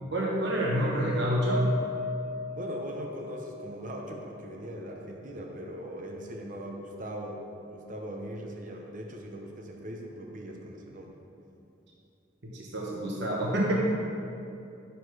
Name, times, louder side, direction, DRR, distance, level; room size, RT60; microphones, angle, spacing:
voice 1, 0.1-1.7 12.4-13.7, equal, 60° right, -3 dB, 1.2 m, -28 dB
Piano, 1.5-6.0 6.3-6.5 6.9-7.0, left 3 dB, 85° right, 1.4 m, -38 dB
voice 2, 2.5-7.4 7.7-11.1, equal, 40° right, 1 dB, 0.9 m, -40 dB
11.5 x 7.0 x 4.8 m, 2.7 s
head